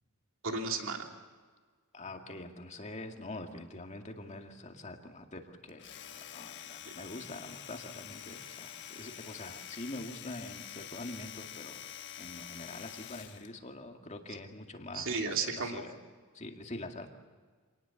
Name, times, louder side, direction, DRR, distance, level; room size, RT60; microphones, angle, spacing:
voice 1, 0.4-1.1 14.9-15.8, right 4 dB, 60° right, 3 dB, 2.9 m, -33 dB
voice 2, 1.9-11.8 12.1-16.0 16.3-17.1, left 2 dB, 30° left, 4 dB, 2.2 m, -45 dB
Domestic sounds home sounds, 5.7-13.5, left 10 dB, 55° left, 1.3 m, -47 dB
27.0 x 19.5 x 7.2 m, 1.5 s
head